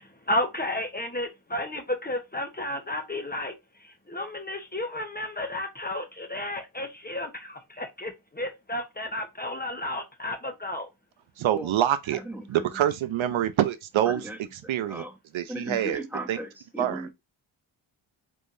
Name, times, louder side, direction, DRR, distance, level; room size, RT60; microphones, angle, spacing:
voice 1, 0.3-3.5 4.1-10.9, left 1 dB, 20° left, 1.1 m, -32 dB
voice 2, 11.4-12.2 12.5-15.0 15.3-16.0 16.3-16.4 16.8-17.1, right 11 dB, 75° right, 0.6 m, -26 dB
voice 3, 12.1-12.7 14.1-14.4 14.7-15.1 15.5-17.1, right 1 dB, 5° right, 1.2 m, -37 dB
4.3 x 3.5 x 2.6 m
cardioid pair, 50°, 48 cm